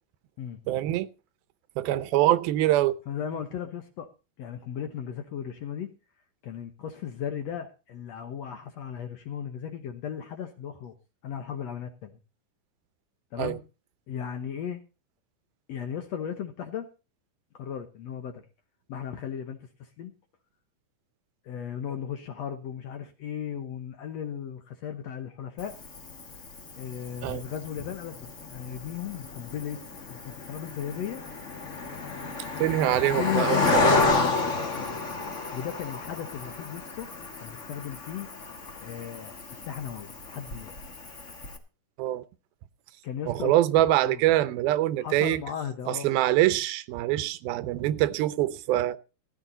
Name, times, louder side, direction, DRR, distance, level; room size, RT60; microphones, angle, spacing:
voice 1, 0.7-1.1 1.8-3.0 13.4-13.6 27.2-27.4 32.6-33.9 42.0-42.2 43.3-45.4 45.9-49.0, right 14 dB, 90° right, 2.6 m, -24 dB
voice 2, 3.1-4.1 4.4-5.9 6.4-10.9 11.2-12.2 13.3-13.6 14.1-14.8 15.7-16.9 17.5-18.4 18.9-20.1 21.4-25.7 26.8-29.8 30.1-31.2 33.2-35.0 35.4-37.1 37.4-38.3 38.8-40.7 43.0-43.5 44.0-44.2 45.0-46.2, left 8 dB, 65° left, 1.8 m, -36 dB
Cricket, 25.6-41.6, left 3 dB, 45° left, 0.9 m, -31 dB
15.5 x 10.5 x 4.0 m
omnidirectional pair, 4.2 m